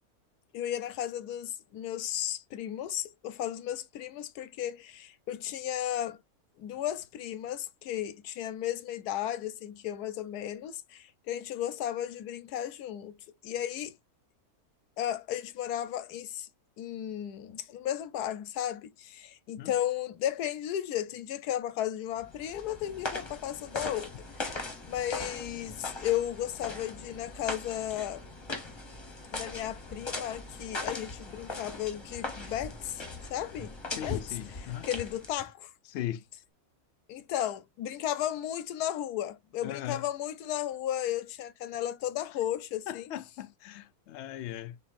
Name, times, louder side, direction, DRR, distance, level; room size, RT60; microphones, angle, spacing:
voice 1, 0.5-6.2 6.6-13.2 13.4-14.0 15.0-16.5 16.8-24.1 24.5-28.2 29.3-33.0 33.3-34.2 34.8-35.7 37.1-43.0, left 11 dB, 90° left, 1.2 m, -34 dB
sound 1, 22.2-35.5, left 2 dB, 25° left, 0.8 m, -40 dB
voice 2, 34.0-34.9 35.9-36.3 39.6-40.1 42.9-44.8, left 12 dB, 70° left, 0.6 m, -38 dB
6.5 x 2.8 x 2.5 m
omnidirectional pair, 1.6 m